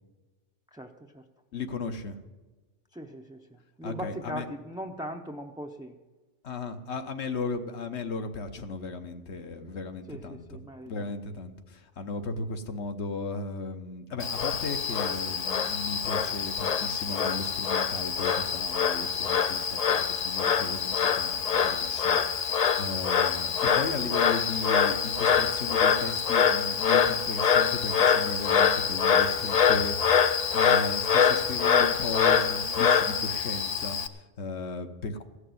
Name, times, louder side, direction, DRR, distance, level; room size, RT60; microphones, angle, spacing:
voice 1, 0.7-1.2 2.9-5.9 10.1-10.9, equal, 5° right, 2 dB, 0.5 m, -39 dB
voice 2, 1.5-2.2 3.8-4.5 6.4-10.6 10.9-30.2 30.5-35.2, left 3 dB, 65° left, 7 dB, 1.3 m, -36 dB
Frog, 14.2-34.1, left 7 dB, 45° left, 0.5 m, -25 dB
15.5 x 6.5 x 9.3 m, 1.2 s
omnidirectional pair, 1.2 m